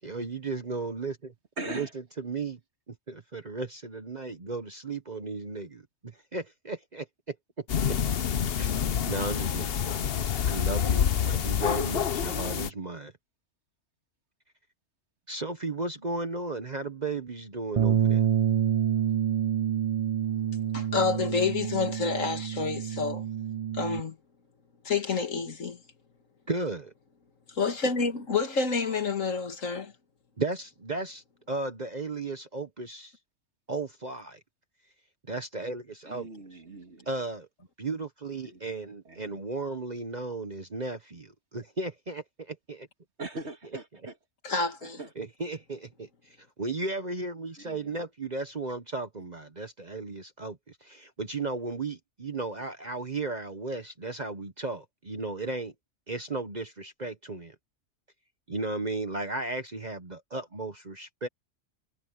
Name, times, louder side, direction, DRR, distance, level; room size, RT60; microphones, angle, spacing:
voice 1, 0.0-1.3 1.7-1.8 2.3-2.6 3.1-5.7 6.3-7.0 8.6-8.7 9.1-13.1 15.3-18.2 26.5-26.9 30.4-31.2 31.5-33.1 33.7-34.4 35.3-36.2 37.1-37.5 37.8-41.3 41.5-42.2 42.7-42.9 45.2-45.9 46.6-50.6 50.9-55.7 56.1-57.5 58.5-61.3, right 3 dB, 35° right, 1.1 m, -35 dB
voice 2, 1.6-2.0 36.0-37.1 38.4-38.7 39.0-39.4 43.2-44.2 44.8-45.1 47.6-48.1, right 2 dB, 55° right, 2.8 m, -41 dB
sound 1, 7.7-12.7, left 8 dB, 50° left, 0.9 m, -27 dB
Bass guitar, 17.8-24.0, right 9 dB, 70° right, 0.3 m, -27 dB
voice 3, 20.7-23.3 23.7-24.2 24.8-25.8 27.6-29.9 44.4-45.0, left 4 dB, 75° left, 2.3 m, -28 dB
omnidirectional pair, 1.4 m